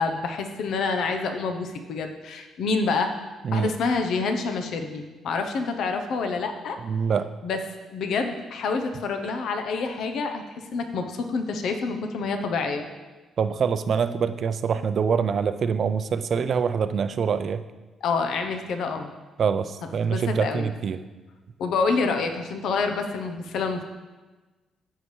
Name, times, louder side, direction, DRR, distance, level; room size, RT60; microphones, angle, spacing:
voice 1, 0.0-3.1 3.5-6.8 7.4-7.6 7.9-12.9 18.0-19.1 20.1-20.7 21.6-23.8, left 4 dB, 75° left, 5 dB, 0.8 m, -27 dB
voice 2, 6.8-7.3 13.4-17.6 19.4-21.0, right 6 dB, 55° right, 11 dB, 0.5 m, -25 dB
15.0 x 5.6 x 3.2 m, 1.2 s
cardioid pair, 90°, 0 cm